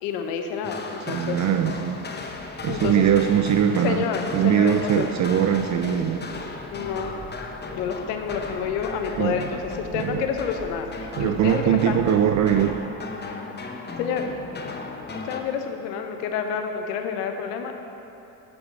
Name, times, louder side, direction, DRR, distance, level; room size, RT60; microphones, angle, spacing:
voice 1, 0.0-1.4 2.6-3.0 3.8-5.0 6.7-7.1 7.8-12.0 14.0-14.3 15.3-17.7, left 7 dB, 75° left, 5 dB, 1.0 m, -29 dB
sound 1, 0.6-15.4, left 3 dB, 20° left, 0.8 m, -36 dB
voice 2, 1.1-2.0 2.6-4.1 4.3-6.3 9.2-9.5 9.9-10.2 11.2-12.8, right 9 dB, 40° right, 7 dB, 0.4 m, -21 dB
Accelerating revving vroom, 2.3-12.8, right 2 dB, 20° right, 1.2 m, -45 dB
7.9 x 6.8 x 5.8 m, 3.0 s
hypercardioid pair, 70°, 49 cm